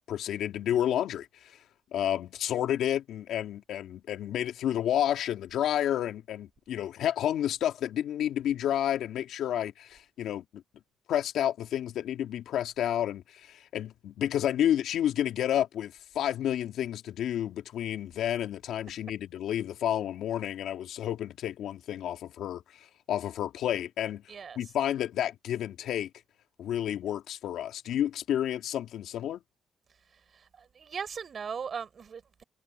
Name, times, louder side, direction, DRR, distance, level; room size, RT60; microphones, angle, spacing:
voice 1, 0.1-1.6 1.9-10.6 11.1-22.6 23.1-24.2 24.6-26.1 26.6-29.4, left 11 dB, 80° left, 2.3 m, -30 dB
voice 2, 24.3-24.7 30.3-32.4, right 6 dB, 45° right, 6.1 m, -39 dB
cardioid pair, 90°, 0 cm